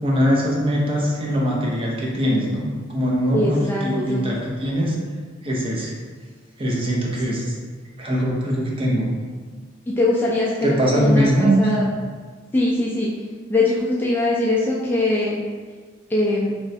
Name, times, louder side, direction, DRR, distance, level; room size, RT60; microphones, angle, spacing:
voice 1, 0.0-5.0 5.4-5.9 6.6-7.5 8.0-9.1 10.6-11.8, equal, 30° right, -3 dB, 0.6 m, -21 dB
voice 2, 3.3-4.2 7.3-7.4 9.9-11.8 12.5-13.1 13.5-15.4 16.1-16.5, left 2 dB, 10° left, -6 dB, 0.3 m, -22 dB
3.1 x 3.0 x 2.7 m, 1.5 s
head